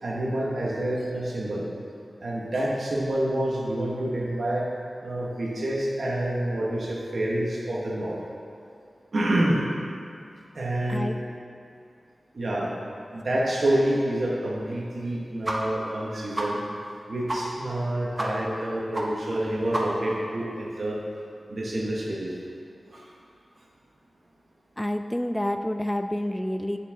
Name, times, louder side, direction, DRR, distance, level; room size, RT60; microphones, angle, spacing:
voice 1, 0.0-1.7 2.2-4.6 5.0-8.2 9.1-9.6 10.5-11.1 12.3-12.7 13.1-16.6 17.1-21.0 21.5-22.3 22.9-23.1, right 1 dB, 70° right, -4 dB, 1.4 m, -27 dB
sound 1, 15.4-15.6 15.9-16.0 16.3-16.5 16.9-17.0 17.3-17.4 17.7-17.8 18.2-18.3 18.6-18.7 18.9-19.0 19.3-19.4 19.7-20.1, right 1 dB, 30° right, 1.1 m, -29 dB
voice 2, 24.8-26.8, left 1 dB, 10° left, 8 dB, 0.3 m, -28 dB
7.3 x 7.0 x 3.6 m, 2.5 s
cardioid pair, 55°, 0 cm